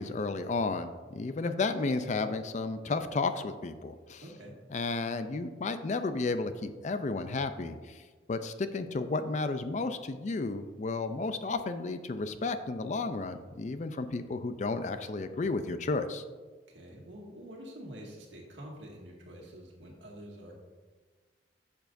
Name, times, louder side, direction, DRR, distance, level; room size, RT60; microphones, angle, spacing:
voice 1, 0.0-4.2 4.7-8.0 8.3-16.2, left 3 dB, 40° left, 10 dB, 0.4 m, -32 dB
voice 2, 4.2-4.5 16.7-20.6, equal, 80° right, -1 dB, 1.9 m, -47 dB
10.0 x 7.0 x 2.6 m, 1.4 s
head